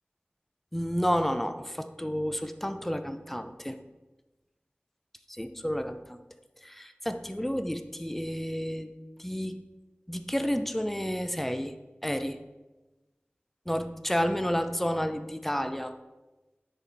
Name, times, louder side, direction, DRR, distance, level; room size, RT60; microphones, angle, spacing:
voice 1, 0.7-3.8 5.3-6.2 6.6-8.9 9.2-9.6 10.1-11.7 12.0-12.4 13.7-16.0, equal, 5° left, 9 dB, 0.5 m, -31 dB
10.0 x 4.3 x 4.0 m, 1.1 s
wide cardioid pair, 45°, 4 cm